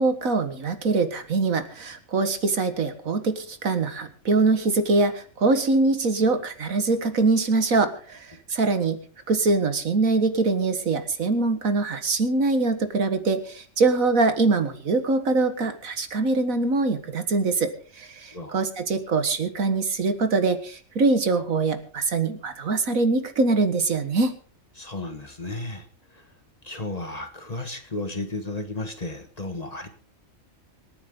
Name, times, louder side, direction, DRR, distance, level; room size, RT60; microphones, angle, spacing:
voice 1, 0.0-9.0 9.3-24.4, right 3 dB, 75° right, 9 dB, 2.1 m, -23 dB
voice 2, 24.8-25.9 26.1-26.3 26.6-29.9, left 2 dB, 30° left, 7 dB, 1.5 m, -33 dB
26.0 x 9.6 x 3.8 m, 0.41 s
omnidirectional pair, 1.4 m